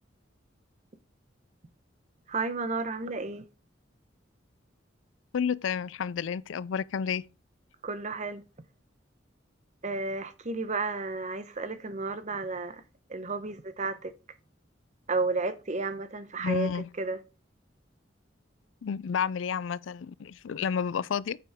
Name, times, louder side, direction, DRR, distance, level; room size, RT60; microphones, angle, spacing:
voice 1, 2.3-3.5 7.8-8.4 9.8-12.8 13.1-14.1 15.1-16.7 17.0-17.2, right 3 dB, 40° right, 0.8 m, -32 dB
voice 2, 5.3-7.2 16.4-16.9 18.8-21.4, left 7 dB, 85° left, 0.4 m, -30 dB
8.7 x 6.9 x 3.5 m
head